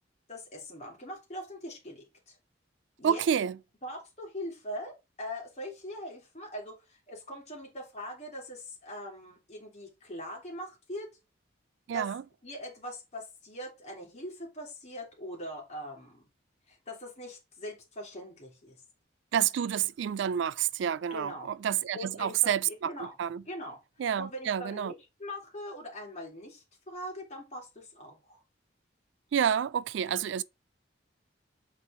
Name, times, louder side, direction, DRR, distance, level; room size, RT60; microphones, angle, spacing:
voice 1, 0.3-2.4 3.0-3.2 3.8-11.2 11.9-12.1 12.4-16.2 16.7-18.8 21.1-21.5 21.9-23.1 23.5-23.8 24.1-24.9 25.2-28.4, equal, 35° left, 2.9 m, -42 dB
voice 2, 3.0-3.6 11.9-12.2 19.3-22.9 23.2-23.4 24.0-24.9 29.3-30.4, right 8 dB, 70° right, 0.3 m, -29 dB
7.4 x 4.5 x 3.7 m
head